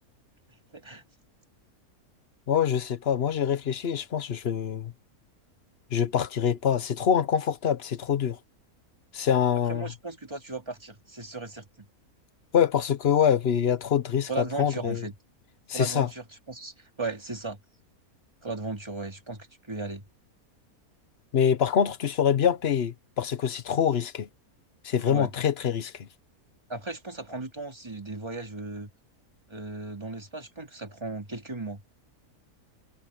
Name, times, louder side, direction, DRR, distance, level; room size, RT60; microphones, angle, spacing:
voice 1, 0.5-1.0 9.7-11.9 14.3-15.1 15.7-17.6 18.4-20.0 25.1-25.3 26.7-28.9 29.5-31.8, right 3 dB, 20° right, 2.5 m, -36 dB
voice 2, 2.5-4.9 5.9-8.4 9.1-9.9 12.5-15.0 15.7-16.1 21.3-24.3 24.8-26.1, left 8 dB, 50° left, 1.1 m, -25 dB
omnidirectional pair, 1.6 m